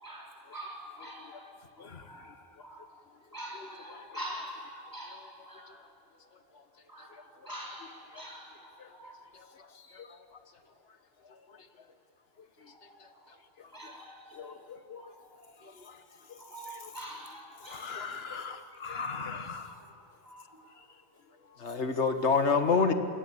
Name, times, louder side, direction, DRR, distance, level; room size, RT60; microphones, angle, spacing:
voice 1, 0.0-1.5 2.1-2.2 2.6-2.8 3.3-4.5 4.9-5.2 5.5-5.7 6.9-7.1 7.4-8.5 9.0-9.1 13.7-14.4 15.0-15.1 16.4-17.9 18.4-18.5 19.0-19.3 20.3-20.4, right 1 dB, 15° right, -2 dB, 4.4 m, -44 dB
voice 2, 17.7-19.7, left 5 dB, 60° left, 9 dB, 1.6 m, -38 dB
voice 3, 21.6-22.9, left 5 dB, 75° left, 8 dB, 1.9 m, -26 dB
27.0 x 21.5 x 8.4 m, 2.6 s
omnidirectional pair, 1.2 m